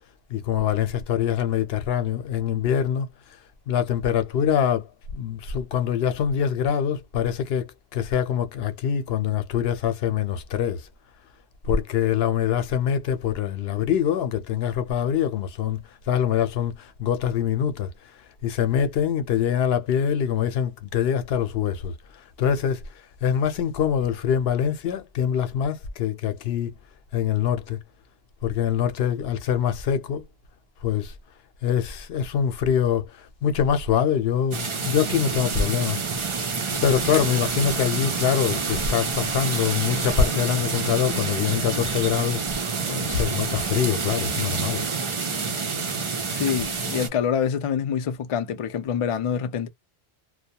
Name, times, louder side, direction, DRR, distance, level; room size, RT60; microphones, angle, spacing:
voice 1, 0.3-3.1 3.7-4.9 5.1-10.9 11.7-15.8 16.1-17.9 18.4-21.9 22.4-22.8 23.2-26.7 27.1-27.8 28.4-30.2 30.8-31.1 31.6-36.0 36.8-42.4 42.8-44.8, left 8 dB, 75° left, 0.8 m, -24 dB
sound 1, 34.5-47.1, right 4 dB, 40° right, 0.5 m, -28 dB
voice 2, 46.3-49.7, left 7 dB, 55° left, 0.3 m, -26 dB
2.2 x 2.1 x 2.7 m
omnidirectional pair, 1.0 m